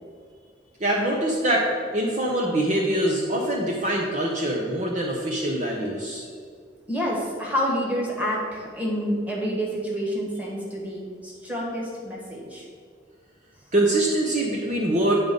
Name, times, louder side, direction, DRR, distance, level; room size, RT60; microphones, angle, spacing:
voice 1, 0.8-6.3 13.7-15.1, right 1 dB, 40° right, -2 dB, 0.8 m, -24 dB
voice 2, 6.9-12.7, equal, 10° right, -4 dB, 1.6 m, -28 dB
9.4 x 3.8 x 5.3 m, 2.1 s
head